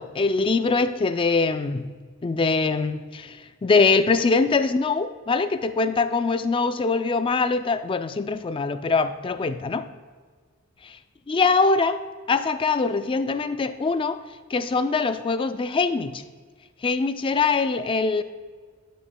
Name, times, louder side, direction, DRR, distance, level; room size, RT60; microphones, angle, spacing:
voice 1, 0.0-1.9 2.2-9.9 11.3-12.0 12.3-14.2 14.5-16.2 16.8-18.2, left 4 dB, 25° left, 11 dB, 0.3 m, -23 dB
12.0 x 6.2 x 2.2 m, 1.5 s
head